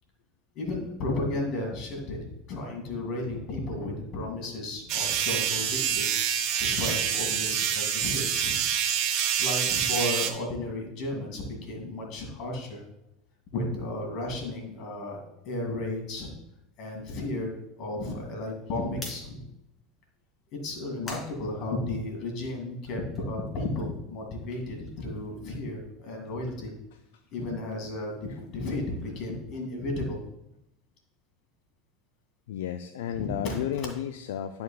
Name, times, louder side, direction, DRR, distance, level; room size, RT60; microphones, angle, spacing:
voice 1, 0.5-8.6 9.4-12.8 13.5-16.3 16.8-17.5 17.8-19.4 20.5-26.7 27.3-28.1 28.5-30.2 33.1-33.6, left 2 dB, 55° left, 1 dB, 2.1 m, -33 dB
sound 1, 4.9-10.3, right 8 dB, 60° right, 0.7 m, -27 dB
sound 2, 18.9-22.3 22.7-25.7 25.9-30.1, left 2 dB, 25° left, 2.6 m, -50 dB
voice 2, 32.5-34.6, left 10 dB, 75° left, 8 dB, 0.3 m, -33 dB
11.0 x 4.6 x 2.3 m, 0.86 s
hypercardioid pair, 85°, 0 cm